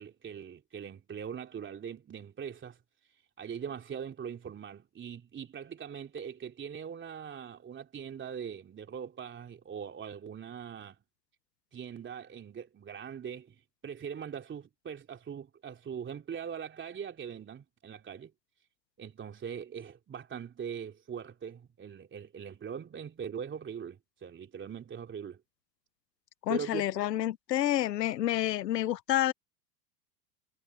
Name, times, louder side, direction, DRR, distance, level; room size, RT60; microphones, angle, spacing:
voice 1, 0.0-2.8 3.4-11.0 11.7-18.3 19.0-25.4 26.5-26.9, right 7 dB, 25° right, 3.2 m, -41 dB
voice 2, 26.4-29.3, left 13 dB, 85° left, 1.0 m, -29 dB
hypercardioid pair, 100°, 48 cm